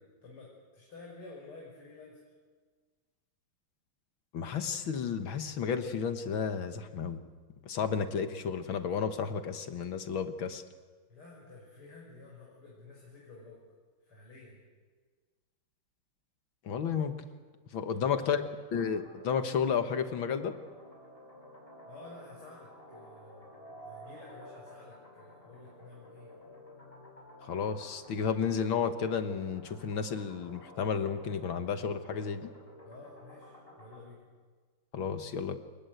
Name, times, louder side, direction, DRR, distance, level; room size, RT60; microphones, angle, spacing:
voice 1, 0.0-2.2 11.1-13.6 14.0-14.6 17.8-18.4 21.8-26.3 32.8-34.2, left 3 dB, 85° left, -3 dB, 6.6 m, -51 dB
voice 2, 4.3-7.2 7.6-10.6 16.7-17.2 17.7-18.4 18.7-20.5 27.5-32.5 34.9-35.6, left 6 dB, 70° left, 8 dB, 2.1 m, -32 dB
sound 1, 18.7-34.1, equal, 25° left, 5.7 m, -52 dB
28.5 x 20.5 x 8.0 m, 1.5 s
omnidirectional pair, 2.4 m